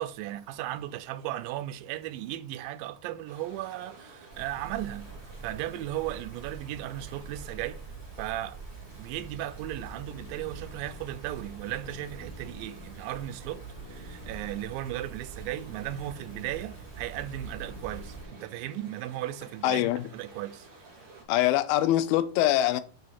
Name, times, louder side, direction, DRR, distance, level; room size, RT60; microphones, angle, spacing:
voice 1, 0.0-7.8 8.2-8.6 8.9-19.9 20.1-20.7, right 13 dB, 80° right, 2.3 m, -36 dB
sound 1, 3.3-21.2, right 3 dB, 40° right, 3.1 m, -53 dB
sound 2, 4.3-18.2, right 4 dB, 25° left, 1.4 m, -45 dB
sound 3, 9.7-19.0, left 3 dB, 60° left, 1.9 m, -52 dB
voice 2, 19.6-20.0 21.3-22.8, left 13 dB, 85° left, 2.5 m, -24 dB
6.4 x 4.8 x 4.1 m
omnidirectional pair, 4.2 m